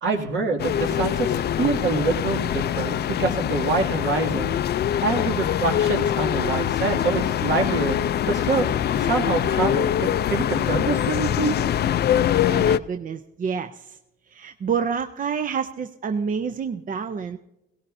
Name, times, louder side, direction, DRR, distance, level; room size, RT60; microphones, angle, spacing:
voice 1, 0.0-4.5 5.0-8.0 8.2-8.7 8.9-11.6, right 4 dB, 70° right, 1 dB, 2.3 m, -25 dB
sound 1, 0.6-12.8, left 10 dB, 55° left, 0.4 m, -23 dB
voice 2, 12.5-14.0 14.3-17.4, right 6 dB, 40° right, 8 dB, 0.6 m, -28 dB
17.5 x 17.0 x 2.6 m, 0.91 s
cardioid pair, 90°, 20 cm